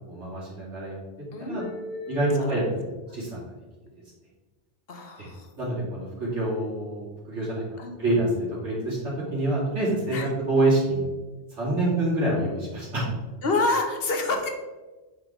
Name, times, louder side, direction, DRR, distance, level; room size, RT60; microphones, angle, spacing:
voice 1, 0.1-1.0 1.4-1.6 2.1-2.8 3.1-3.4 5.2-5.3 5.6-7.6 8.0-11.1 11.5-13.0, right 2 dB, 85° right, -6 dB, 2.9 m, -26 dB
voice 2, 1.3-2.6 4.9-5.5 7.8-8.0 10.1-10.3 13.4-14.5, left 3 dB, 60° left, 4 dB, 1.1 m, -28 dB
7.9 x 5.4 x 3.5 m, 1.2 s
omnidirectional pair, 1.2 m